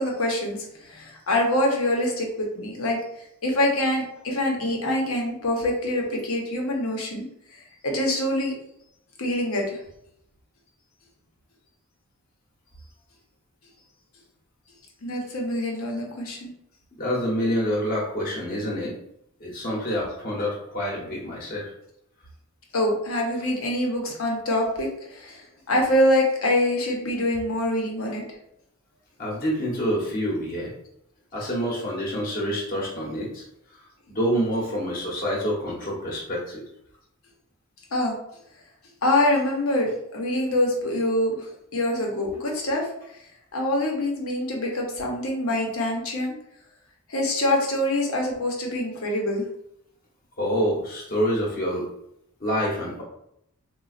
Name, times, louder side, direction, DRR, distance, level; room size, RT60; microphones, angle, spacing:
voice 1, 0.0-3.0 3.4-7.3 7.8-8.5 9.2-9.8 15.0-16.5 22.7-28.2 37.9-38.1 39.0-42.9 43.5-46.3 47.1-49.4, left 1 dB, 70° left, 0 dB, 0.8 m, -25 dB
voice 2, 17.0-19.0 19.4-21.7 29.2-30.7 31.3-33.4 34.1-36.6 50.4-51.9 52.4-53.0, equal, 40° left, -3 dB, 0.9 m, -27 dB
4.0 x 2.3 x 2.4 m, 0.77 s
head